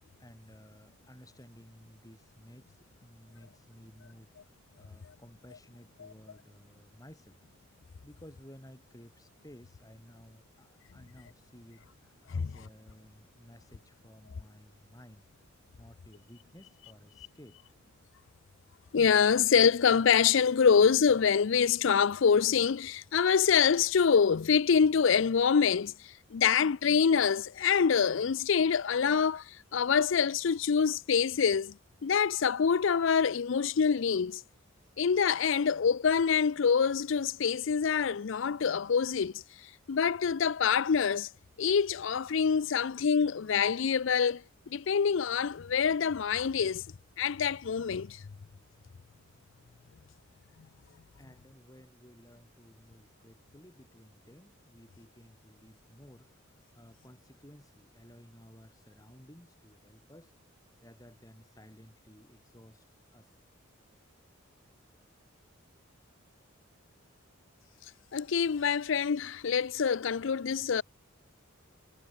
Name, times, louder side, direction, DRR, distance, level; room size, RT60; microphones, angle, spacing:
voice 1, 0.2-7.5 8.0-15.3 15.7-17.6 51.2-60.3 60.8-62.8 63.1-63.3, equal, 15° left, 3.1 m, -55 dB
voice 2, 18.9-31.8 32.0-34.4 35.0-39.4 39.9-41.3 41.6-44.4 44.7-46.8 47.2-48.2 68.1-70.8, left 6 dB, 65° left, 0.5 m, -26 dB
head